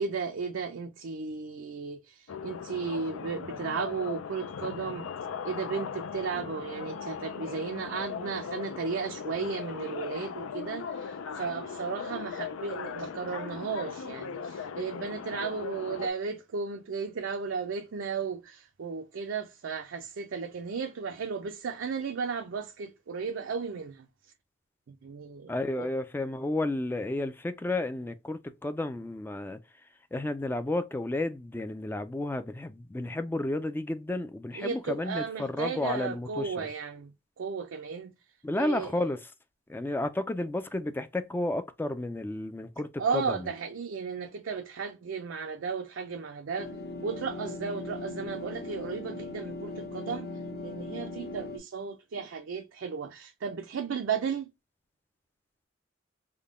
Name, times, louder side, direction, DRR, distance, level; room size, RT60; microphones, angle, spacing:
voice 1, 0.0-5.1 5.4-24.1 24.9-25.9 34.5-38.1 38.6-38.9 43.0-46.7 47.0-54.5, right 5 dB, 65° right, 0.4 m, -35 dB
sound 1, 2.3-16.1, left 6 dB, 85° left, 0.4 m, -38 dB
voice 2, 25.5-29.6 30.1-36.7 38.4-39.3 39.7-43.5, left 2 dB, 10° left, 0.3 m, -32 dB
sound 2, 46.6-51.6, left 2 dB, 55° left, 1.0 m, -39 dB
3.6 x 2.2 x 3.5 m
head